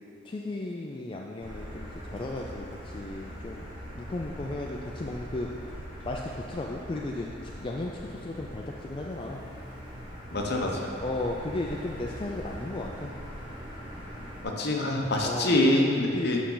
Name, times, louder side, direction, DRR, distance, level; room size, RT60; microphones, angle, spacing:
voice 1, 0.2-3.6 4.0-5.8 6.0-9.4 11.0-13.1 15.2-15.5 16.1-16.3, left 2 dB, 25° left, -1 dB, 0.3 m, -35 dB
Motor vehicle (road), 1.4-14.4, equal, 25° right, 1.1 m, -42 dB
voice 2, 10.3-10.8 14.4-16.4, left 1 dB, 55° left, 0 dB, 0.9 m, -25 dB
8.5 x 5.6 x 3.9 m, 2.6 s
head